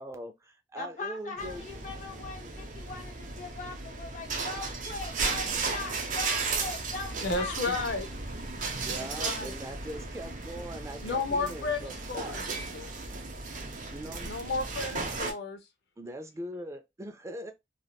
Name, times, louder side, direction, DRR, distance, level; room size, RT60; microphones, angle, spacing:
voice 1, 0.0-0.3 0.7-1.6 7.7-7.8 8.9-12.4 13.6-14.3 16.0-17.5, right 1 dB, 15° right, 0.3 m, -41 dB
voice 2, 0.7-7.6, left 3 dB, 45° left, 1.0 m, -40 dB
sound 1, 1.4-15.3, right 4 dB, 50° right, 0.7 m, -35 dB
voice 3, 7.2-8.1 8.9-9.5 11.0-12.9 14.2-15.6, left 3 dB, 70° left, 0.6 m, -33 dB
3.4 x 2.4 x 2.3 m
head